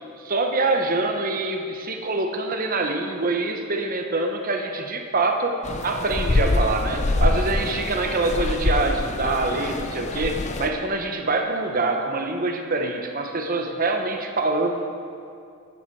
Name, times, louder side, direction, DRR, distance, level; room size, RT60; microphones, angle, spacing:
voice 1, 0.2-5.6 5.8-14.7, right 2 dB, 40° right, 4 dB, 0.9 m, -25 dB
sound 1, 5.6-10.7, left 2 dB, 30° left, 0.5 m, -25 dB
13.5 x 8.1 x 4.7 m, 2.4 s
head